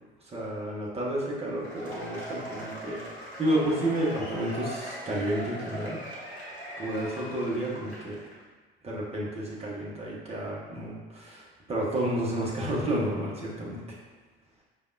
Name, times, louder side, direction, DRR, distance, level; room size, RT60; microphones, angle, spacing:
voice 1, 0.3-6.0 6.8-8.2 8.8-14.0, right 1 dB, 20° right, -5 dB, 1.0 m, -31 dB
Cheering / Applause / Crowd, 1.5-8.3, equal, 90° left, 0.8 m, -40 dB
5.1 x 2.4 x 2.5 m, 1.3 s
figure-of-eight pair, 65°, 31 cm